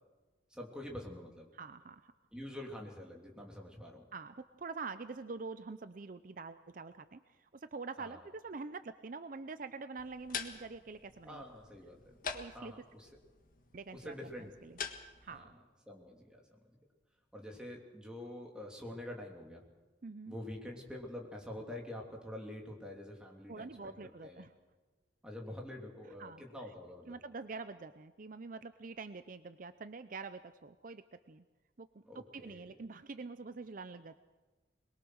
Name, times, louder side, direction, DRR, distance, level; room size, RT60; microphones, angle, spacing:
voice 1, 0.5-1.5 2.3-4.1 8.0-8.2 11.2-12.2 12.5-13.1 13.9-14.5 15.3-15.5 15.9-16.6 17.3-19.6 20.3-24.5 25.2-27.2 32.0-32.6, left 1 dB, 5° right, 0 dB, 3.1 m, -46 dB
voice 2, 1.5-2.1 4.1-11.4 12.3-12.7 13.7-14.8 15.2-15.6 20.0-20.3 23.5-24.5 26.2-26.4 27.1-31.4 31.8-34.2, right 4 dB, 45° right, 11 dB, 0.6 m, -46 dB
sound 1, 10.0-15.4, left 6 dB, 50° left, 1.6 m, -46 dB
22.0 x 22.0 x 6.4 m, 1.2 s
head